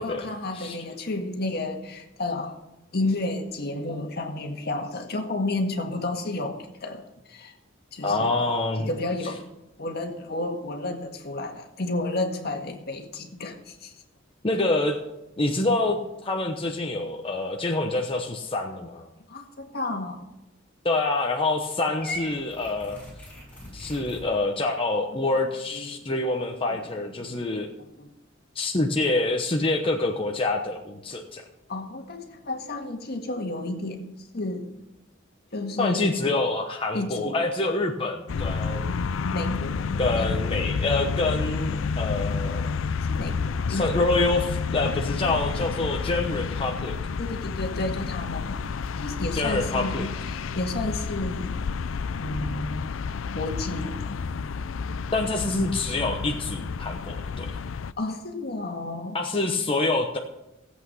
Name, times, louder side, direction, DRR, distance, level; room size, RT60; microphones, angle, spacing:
voice 1, 0.0-2.6 2.9-7.5 7.9-8.3 8.8-9.4 9.8-13.9 19.3-20.2 25.1-26.1 26.7-26.9 27.2-27.4 28.0-28.1 31.7-34.7 35.5-36.2 36.9-37.4 39.3-40.4 43.1-44.1 47.2-48.7 49.0-50.1 50.5-51.5 52.2-52.9 53.3-54.2 58.0-59.2, left 2 dB, 55° left, 4 dB, 1.8 m, -32 dB
voice 2, 8.0-8.9 14.4-15.0 15.4-19.1 20.8-23.0 23.7-27.7 28.5-31.4 35.8-39.0 40.0-42.7 43.7-47.0 49.3-50.1 55.1-57.6 59.1-60.2, left 2 dB, 30° left, 1 dB, 1.0 m, -26 dB
Purr / Meow, 22.0-24.2, left 1 dB, 5° left, 5.9 m, -38 dB
sound 1, 38.3-57.9, left 5 dB, 85° left, 0.5 m, -30 dB
16.0 x 8.3 x 5.6 m, 0.92 s
head